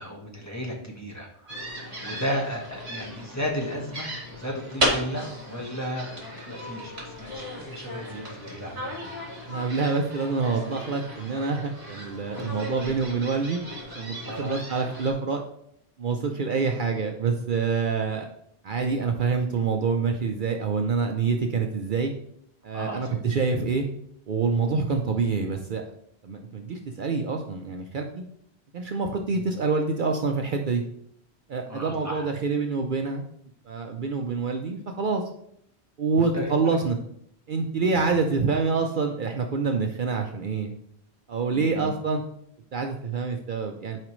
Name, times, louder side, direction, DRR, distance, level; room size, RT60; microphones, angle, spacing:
voice 1, 0.0-9.1 12.3-12.6 14.2-14.6 22.7-23.3 29.3-29.4 31.7-32.3 36.1-36.5 37.8-38.1 41.5-41.9, equal, 15° left, -1 dB, 1.3 m, -34 dB
sound 1, 1.5-15.1, equal, 35° right, 2.2 m, -35 dB
voice 2, 9.5-13.6 13.9-15.4 16.0-18.3 18.6-22.1 22.6-23.8 24.3-25.8 26.2-28.2 28.7-30.8 31.5-33.2 33.7-35.2 36.0-37.0 37.5-40.7 41.3-42.2 42.7-44.0, right 4 dB, 55° right, 4 dB, 0.7 m, -26 dB
11.0 x 4.9 x 3.1 m, 0.72 s
omnidirectional pair, 1.1 m